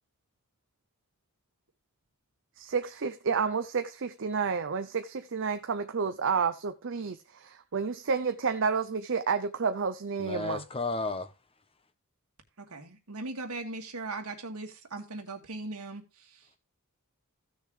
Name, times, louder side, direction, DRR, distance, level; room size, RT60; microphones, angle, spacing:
voice 1, 2.6-10.6, right 5 dB, 60° right, 0.6 m, -30 dB
voice 2, 10.2-11.3, left 3 dB, 25° left, 1.0 m, -33 dB
voice 3, 12.6-16.0, right 2 dB, 90° right, 2.3 m, -39 dB
15.5 x 6.5 x 3.3 m
head